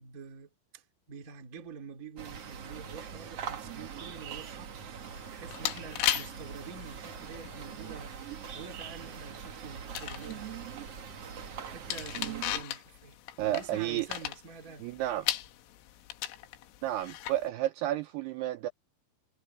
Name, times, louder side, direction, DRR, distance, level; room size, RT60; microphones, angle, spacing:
voice 1, 0.0-4.9 5.3-10.6 11.4-13.2 13.4-14.9, right 5 dB, 30° right, 1.5 m, -47 dB
sound 1, 2.2-12.6, right 7 dB, 65° right, 1.5 m, -42 dB
sound 2, 5.0-17.5, left 14 dB, 90° left, 3.9 m, -38 dB
voice 2, 13.4-14.1 14.8-15.3 16.8-18.7, right 14 dB, 85° right, 2.3 m, -31 dB
omnidirectional pair, 5.5 m